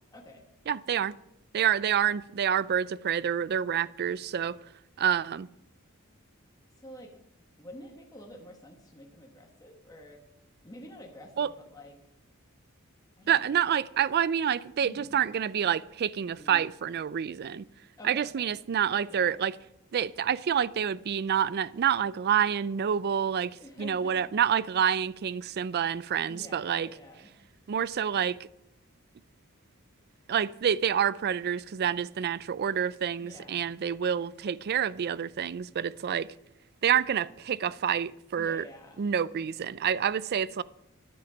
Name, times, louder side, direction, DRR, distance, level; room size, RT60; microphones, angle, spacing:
voice 1, 0.1-0.4 6.8-7.1 7.6-10.2 10.6-12.0 13.2-13.5 14.8-15.2 16.3-16.6 18.0-18.6 19.1-19.3 23.6-24.3 26.2-27.3 33.2-33.7 38.4-39.1, left 1 dB, 15° left, 1.2 m, -48 dB
voice 2, 0.7-1.1 1.5-4.6 5.0-5.5 11.4-11.5 13.3-17.7 18.0-19.5 19.9-26.9 27.7-28.5 30.3-36.3 36.8-38.6 39.0-40.6, right 8 dB, 50° right, 0.4 m, -28 dB
10.0 x 9.2 x 5.1 m
head